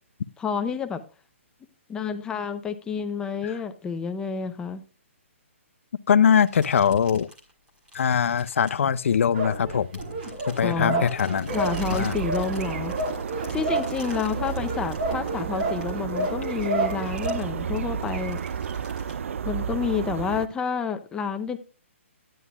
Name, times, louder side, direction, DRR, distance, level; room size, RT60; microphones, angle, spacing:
voice 1, 0.4-1.0 1.9-4.8 10.6-11.1 11.5-13.0 13.5-18.4 19.4-21.6, left 6 dB, 10° left, 0.5 m, -29 dB
voice 2, 6.1-7.3 7.9-9.9 10.5-11.5 11.9-12.1, left 7 dB, 70° left, 0.5 m, -22 dB
sound 1, 6.3-9.5 9.9-19.1, equal, 15° right, 1.7 m, -48 dB
sound 2, 9.3-17.3, right 2 dB, 50° right, 2.1 m, -31 dB
sound 3, 11.5-20.5, right 7 dB, 70° right, 0.4 m, -32 dB
9.9 x 9.3 x 2.4 m
hypercardioid pair, 150°, 7 cm